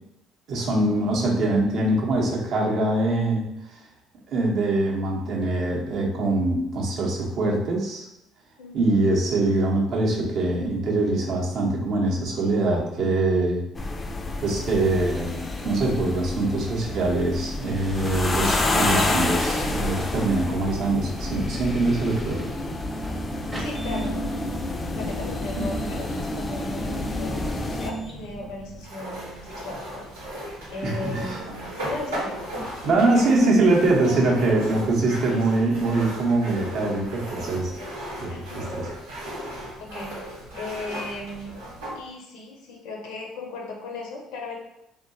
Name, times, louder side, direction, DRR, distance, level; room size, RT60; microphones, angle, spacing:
voice 1, 0.5-3.8 4.3-8.0 8.7-13.6 14.4-22.4 25.6-25.7 30.8-31.4 32.8-37.7 38.2-38.8, right 2 dB, 60° right, -1 dB, 0.7 m, -23 dB
voice 2, 8.6-9.1 12.3-12.4 23.6-24.2 24.9-30.0 30.7-32.4 32.9-33.8 34.1-34.5 35.3-35.4 38.3-38.7 39.5-41.6 41.9-44.6, left 2 dB, 75° left, 0 dB, 0.6 m, -37 dB
sound 1, 13.8-27.9, left 2 dB, 30° left, 0.4 m, -29 dB
sound 2, 17.8-28.9, right 2 dB, 20° right, 0.7 m, -36 dB
sound 3, 28.8-42.0, equal, 85° right, 0.8 m, -36 dB
2.7 x 2.2 x 2.6 m, 0.82 s
hypercardioid pair, 60°, 0 cm